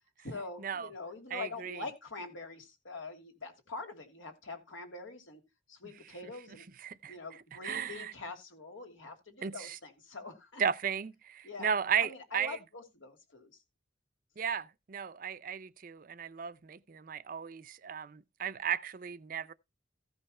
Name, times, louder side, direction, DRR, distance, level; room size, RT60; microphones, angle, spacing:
voice 1, 0.2-5.4 5.7-6.7 7.1-10.6 11.4-11.7 12.0-13.6, left 3 dB, 90° left, 2.6 m, -44 dB
voice 2, 1.3-1.8 6.8-7.1 7.5-8.1 9.4-9.8 10.6-12.6 14.4-19.5, right 7 dB, 45° right, 0.5 m, -35 dB
14.5 x 5.5 x 4.3 m
head